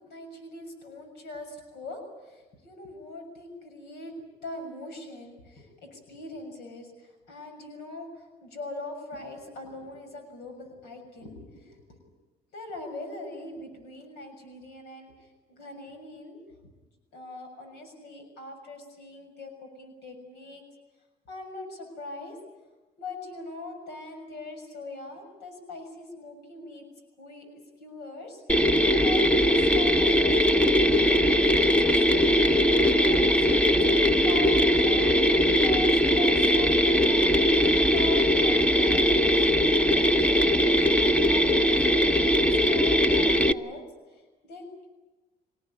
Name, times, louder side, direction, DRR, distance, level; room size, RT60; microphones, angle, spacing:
voice 1, 0.0-4.1 4.4-12.0 12.5-16.4 17.1-20.6 21.3-22.4 23.0-26.8 27.2-27.5 27.8-30.8 31.4-35.2 35.6-37.3 37.9-44.9, left 2 dB, 75° left, 4 dB, 6.6 m, -42 dB
Mechanisms, 28.5-43.5, equal, 5° left, 0.9 m, -21 dB
24.5 x 19.0 x 9.7 m, 1.2 s
cardioid pair, 110°, 17 cm